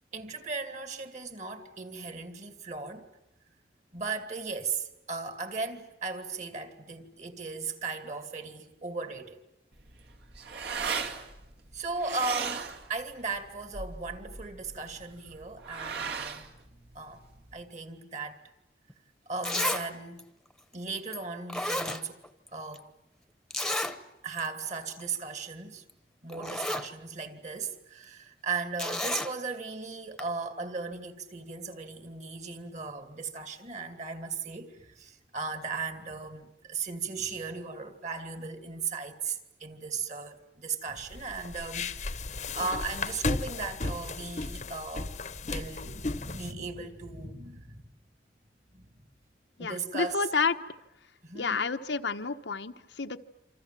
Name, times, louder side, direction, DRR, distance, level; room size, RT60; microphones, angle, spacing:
voice 1, 0.1-3.1 3.9-9.4 11.7-16.5 16.9-17.2 17.5-18.4 19.3-20.2 20.7-22.2 22.5-22.9 24.2-25.8 26.2-45.1 45.4-47.9 48.7-49.1 49.6-50.2 51.2-51.7, right 4 dB, 40° right, 2.5 m, -37 dB
sound 1, 9.7-17.6, right 6 dB, 65° right, 2.4 m, -38 dB
Zipper (clothing), 18.9-19.0 19.4-19.9 20.2-20.3 21.1-21.2 21.5-22.5 22.7-22.8 23.5-24.0 24.4-24.5 24.8-25.0 25.9-26.0 26.3-26.9 28.8-29.3 30.2-30.3, left 1 dB, 5° left, 1.1 m, -31 dB
sound 2, 41.0-46.5, left 3 dB, 40° left, 1.0 m, -35 dB
voice 2, 49.6-50.5 51.3-53.2, left 4 dB, 90° left, 1.1 m, -30 dB
27.5 x 26.5 x 7.6 m
head